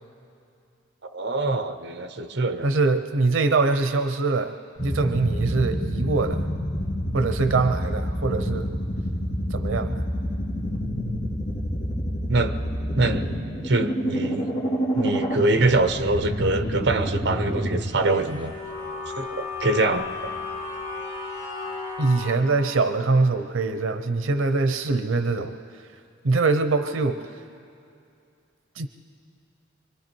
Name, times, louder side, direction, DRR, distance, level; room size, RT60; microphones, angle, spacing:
voice 1, 1.1-2.7 12.3-12.6 12.9-13.3 13.6-14.6 14.9-18.5 19.2-20.1, right 2 dB, 60° right, 9 dB, 0.9 m, -24 dB
voice 2, 2.6-6.5 7.1-8.7 9.5-10.0 22.0-25.6 26.2-27.3 28.8-28.9, right 3 dB, 90° right, 9 dB, 0.7 m, -23 dB
sound 1, 4.8-17.8 18.1-22.3, equal, 35° left, 2.8 m, -29 dB
25.0 x 24.5 x 4.6 m, 2.5 s
head